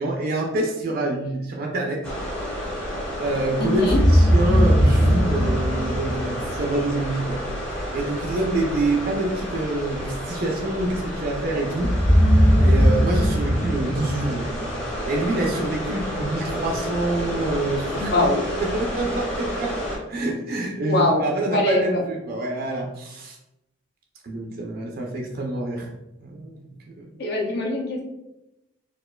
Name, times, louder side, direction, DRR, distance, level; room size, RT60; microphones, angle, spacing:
voice 1, 0.0-2.0 3.2-7.4 7.9-11.9 12.6-14.7 15.0-23.4 24.2-25.9 26.2-26.6 27.0-27.2, right 2 dB, 45° right, 1 dB, 0.4 m, -26 dB
sound 1, 2.0-20.0, equal, 5° left, 0.7 m, -30 dB
voice 2, 3.6-4.0 18.0-18.4 20.8-22.0 27.2-28.0, left 2 dB, 50° left, 0 dB, 0.6 m, -23 dB
sound 2, 3.8-6.8 11.8-15.0, equal, 85° left, 1.2 m, -19 dB
4.3 x 2.4 x 2.3 m, 0.90 s
head